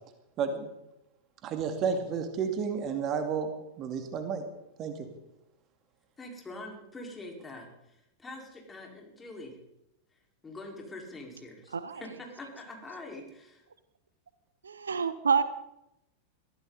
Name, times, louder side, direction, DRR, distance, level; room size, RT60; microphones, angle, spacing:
voice 1, 0.4-0.7 1.4-4.4 4.8-5.1, right 6 dB, 35° right, 7 dB, 2.2 m, -31 dB
voice 2, 6.2-9.6 10.4-13.6, left 2 dB, 15° left, 0 dB, 4.7 m, -44 dB
voice 3, 14.6-15.4, right 6 dB, 70° right, 14 dB, 0.8 m, -27 dB
22.5 x 15.5 x 4.1 m, 0.87 s
figure-of-eight pair, 90°, 0 cm